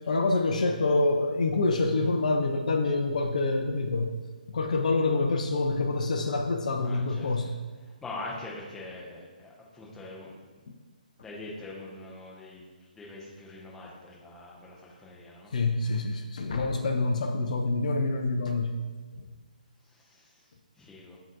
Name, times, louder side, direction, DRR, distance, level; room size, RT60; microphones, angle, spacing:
voice 1, 0.1-4.1 4.5-7.5 10.7-10.8 15.5-18.8 19.2-19.3, left 3 dB, 55° left, 4 dB, 0.4 m, -26 dB
voice 2, 6.8-7.5 8.0-10.4 11.2-12.6 12.9-15.5 19.9-20.4 20.8-21.2, left 2 dB, 5° left, -5 dB, 0.7 m, -43 dB
7.1 x 2.7 x 2.5 m, 1.4 s
figure-of-eight pair, 135°, 5 cm